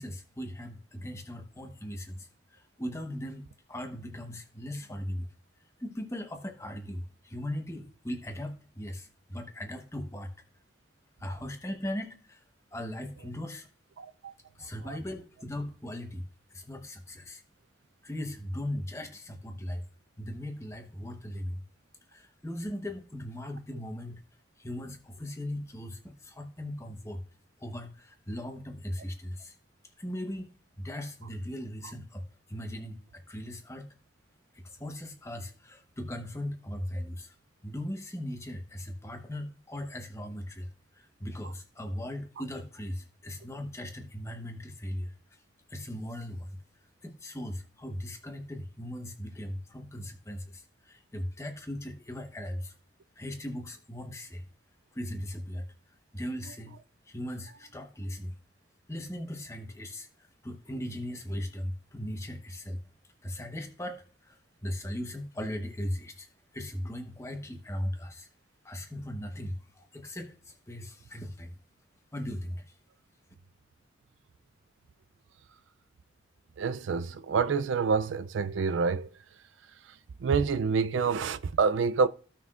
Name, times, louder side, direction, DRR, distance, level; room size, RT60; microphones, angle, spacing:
voice 1, 0.0-5.3 5.8-10.3 11.2-12.4 12.7-13.7 14.5-17.4 18.0-19.8 20.2-21.6 22.1-24.2 24.6-27.2 27.6-29.6 30.0-33.9 34.5-37.3 37.6-45.4 45.7-46.6 47.0-52.7 53.2-54.5 54.9-55.7 56.1-56.8 57.1-58.3 58.9-62.8 63.2-68.3 68.6-71.6 72.1-72.8, left 1 dB, 15° left, 1.0 m, -38 dB
voice 2, 14.0-14.3 14.9-15.0 76.6-79.1 80.2-82.1, right 5 dB, 80° right, 0.4 m, -27 dB
15.5 x 5.8 x 2.4 m
head